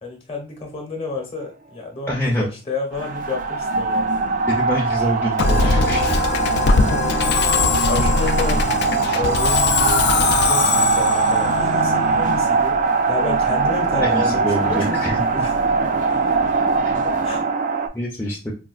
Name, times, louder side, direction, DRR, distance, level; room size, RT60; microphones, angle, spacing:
voice 1, 0.0-4.2 6.8-6.9 7.4-8.6 9.1-12.7 13.1-15.5 17.2-17.4, left 3 dB, 30° left, 1 dB, 0.9 m, -30 dB
voice 2, 2.1-2.5 4.5-6.2 14.0-15.5 17.9-18.5, equal, 10° left, -5 dB, 0.6 m, -25 dB
sound 1, 2.9-17.9, right 4 dB, 45° right, 0.3 m, -21 dB
Musical instrument, 5.4-12.7, left 4 dB, 60° left, 0.4 m, -21 dB
4.3 x 2.3 x 2.3 m, 0.32 s
head